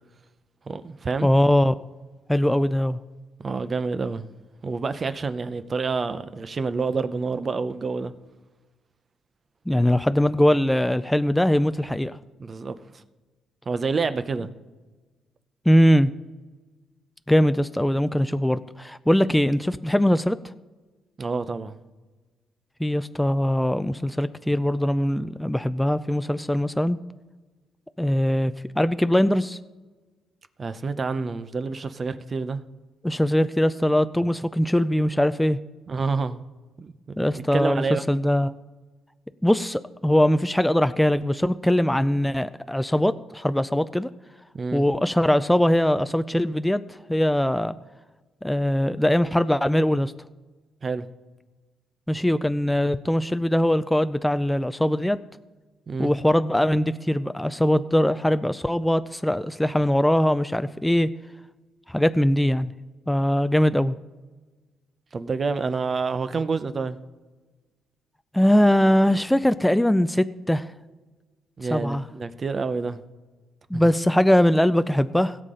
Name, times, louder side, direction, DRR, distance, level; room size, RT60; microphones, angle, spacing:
voice 1, 0.7-1.3 3.4-4.3 4.6-8.1 12.4-12.8 13.7-14.5 21.2-21.8 30.6-32.6 35.9-36.4 36.8-37.2 37.5-38.0 44.5-44.9 50.8-51.1 55.9-56.1 65.1-67.0 71.6-73.0 73.7-73.8, right 4 dB, 35° right, 0.7 m, -28 dB
voice 2, 1.2-1.8 2.3-3.0 9.7-12.2 15.7-16.1 17.3-20.4 22.8-27.0 28.0-29.6 33.0-35.6 37.2-38.5 39.4-44.1 44.7-46.8 47.1-47.8 48.4-50.1 52.1-55.2 56.0-61.1 61.9-62.7 63.1-64.0 68.3-70.7 71.7-72.0 73.7-75.4, equal, 5° left, 0.4 m, -21 dB
17.0 x 6.8 x 3.8 m
cardioid pair, 90°, 0 cm